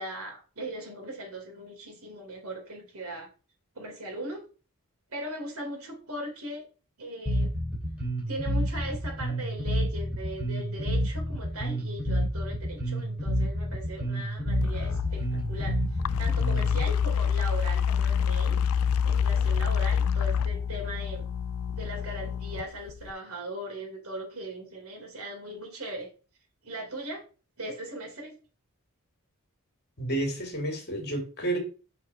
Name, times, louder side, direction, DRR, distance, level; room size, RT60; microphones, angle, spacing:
voice 1, 0.0-3.3 3.7-4.4 5.1-6.6 7.0-7.6 8.3-18.6 19.0-21.2 21.7-26.1 26.6-27.2 27.6-28.4, right 1 dB, 65° right, 3.3 m, -39 dB
Bass guitar, 7.3-16.8, equal, 5° right, 3.0 m, -29 dB
sound 1, 14.5-23.1, left 7 dB, 65° left, 0.4 m, -27 dB
voice 2, 30.0-31.6, right 2 dB, 50° left, 2.4 m, -30 dB
5.9 x 4.7 x 5.5 m
head